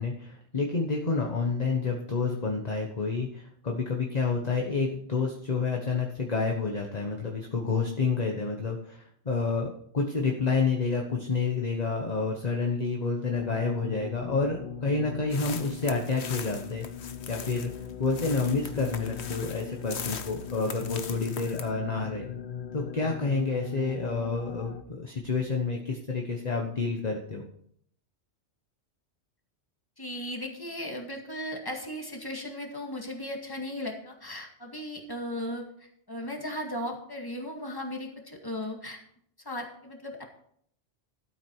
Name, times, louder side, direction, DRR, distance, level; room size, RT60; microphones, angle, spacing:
voice 1, 0.0-16.9 17.3-17.7 18.0-22.3 22.7-27.4, left 4 dB, 40° left, 1 dB, 1.3 m, -29 dB
sound 1, 13.3-24.8, left 7 dB, 55° left, 0.9 m, -39 dB
sound 2, 15.3-21.7, left 7 dB, 70° left, 1.2 m, -41 dB
voice 2, 30.0-39.0 39.5-40.2, left 1 dB, 20° left, 1 dB, 2.0 m, -36 dB
12.5 x 8.6 x 4.6 m, 0.67 s
omnidirectional pair, 1.1 m